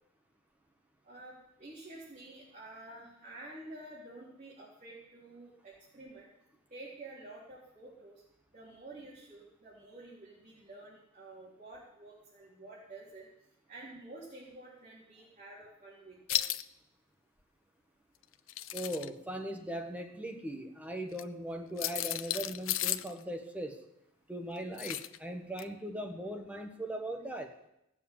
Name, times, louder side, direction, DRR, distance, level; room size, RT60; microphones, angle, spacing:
voice 1, 1.0-6.3 6.7-8.2 8.5-13.3 13.7-16.4, right 2 dB, 35° right, 4.1 m, -50 dB
sound 1, 16.3-16.6 18.3-19.1 21.1-21.2 21.8-23.1 24.8-25.2 25.6-25.7, left 13 dB, 70° left, 0.6 m, -34 dB
voice 2, 18.7-23.8 24.3-27.6, right 1 dB, 5° right, 1.1 m, -39 dB
17.0 x 7.3 x 8.7 m
head